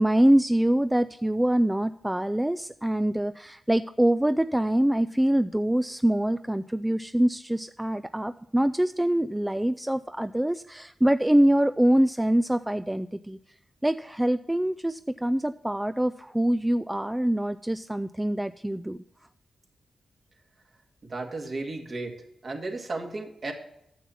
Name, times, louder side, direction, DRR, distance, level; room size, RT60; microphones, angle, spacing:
voice 1, 0.0-13.4 13.8-19.0, right 1 dB, 10° right, 12 dB, 0.3 m, -24 dB
voice 2, 21.1-22.1 22.4-23.5, right 2 dB, 50° right, 3 dB, 2.1 m, -34 dB
9.3 x 7.1 x 5.7 m, 0.81 s
cardioid pair, 70°, 0 cm